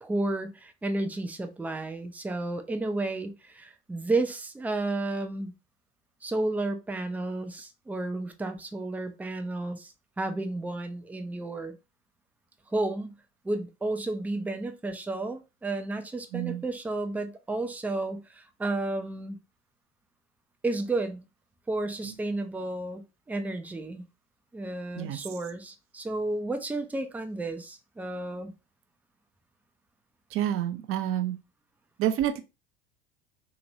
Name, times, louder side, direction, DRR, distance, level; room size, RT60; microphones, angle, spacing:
voice 1, 0.0-5.5 6.2-11.7 12.7-13.1 13.4-19.4 20.6-21.2 21.7-24.0 24.5-28.5, right 2 dB, 5° right, 0.5 m, -32 dB
voice 2, 16.3-16.6 25.0-25.2 30.3-31.4 32.0-32.4, right 11 dB, 45° right, 0.7 m, -28 dB
3.0 x 2.9 x 2.6 m
hypercardioid pair, 80°, 31 cm